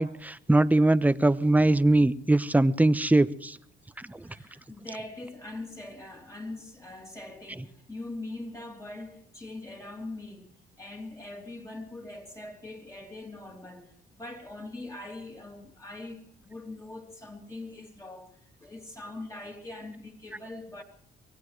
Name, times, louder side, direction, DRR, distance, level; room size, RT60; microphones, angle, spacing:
voice 1, 0.0-3.6 4.0-4.2, right 2 dB, 10° right, 0.8 m, -22 dB
voice 2, 4.2-10.5 10.8-20.8, left 2 dB, 15° left, 3.2 m, -42 dB
24.0 x 17.5 x 3.3 m
cardioid pair, 90°, 20 cm